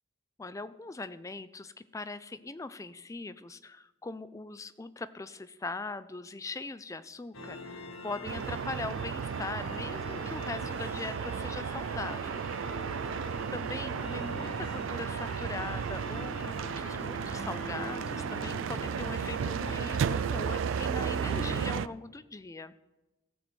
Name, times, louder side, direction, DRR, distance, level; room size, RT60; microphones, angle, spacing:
voice 1, 0.4-12.5 12.9-13.2 13.5-22.8, left 3 dB, 15° left, 15 dB, 0.3 m, -41 dB
sound 1, 7.3-21.7, left 2 dB, 85° left, 1.2 m, -43 dB
sound 2, 8.2-21.9, right 7 dB, 65° right, 0.3 m, -34 dB
15.0 x 7.7 x 4.4 m, 1.1 s
head